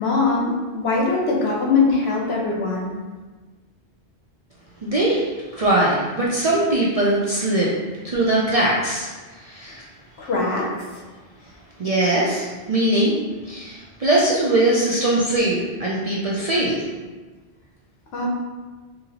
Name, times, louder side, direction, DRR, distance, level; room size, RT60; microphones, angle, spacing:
voice 1, 0.0-2.9 10.2-10.7 18.1-18.3, left 3 dB, 70° left, -2 dB, 1.0 m, -21 dB
voice 2, 4.8-5.3 5.6-7.7 8.0-9.1 9.4-9.8 11.8-13.1 13.5-16.8, right 1 dB, 50° right, -6 dB, 0.4 m, -21 dB
3.9 x 2.8 x 2.8 m, 1.3 s
omnidirectional pair, 1.1 m